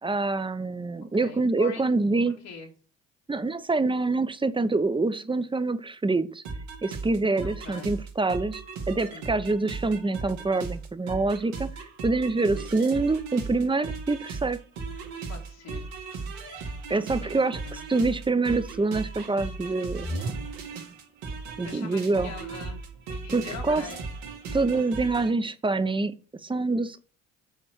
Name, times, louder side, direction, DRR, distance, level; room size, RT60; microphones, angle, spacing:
voice 1, 0.0-2.4 3.3-6.4 6.8-14.6 16.9-20.1 21.6-22.3 23.3-23.8 24.5-26.1 26.4-27.0, right 3 dB, 15° right, 0.8 m, -26 dB
voice 2, 1.2-1.9 2.3-2.7 7.4-7.9 9.0-9.3 12.5-12.7 15.3-15.9 16.9-17.8 21.6-22.8 23.1-24.0, left 5 dB, 75° left, 2.2 m, -43 dB
sound 1, 6.4-25.3, right 4 dB, 75° right, 2.0 m, -37 dB
8.1 x 4.4 x 6.1 m
hypercardioid pair, 50°, 36 cm